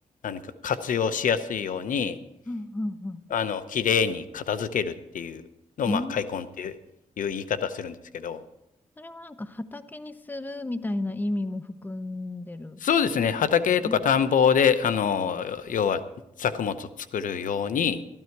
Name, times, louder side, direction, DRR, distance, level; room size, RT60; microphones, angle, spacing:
voice 1, 0.2-2.2 3.3-5.4 5.8-6.7 7.2-7.9 8.2-8.4 12.8-16.0 16.4-16.9 17.1-18.0, left 7 dB, 85° left, 12 dB, 0.7 m, -25 dB
voice 2, 2.5-3.2 5.8-6.2 9.0-12.8 13.8-14.0, left 1 dB, 15° left, 11 dB, 0.7 m, -32 dB
13.5 x 12.5 x 4.6 m, 0.86 s
wide cardioid pair, 110°, 13 cm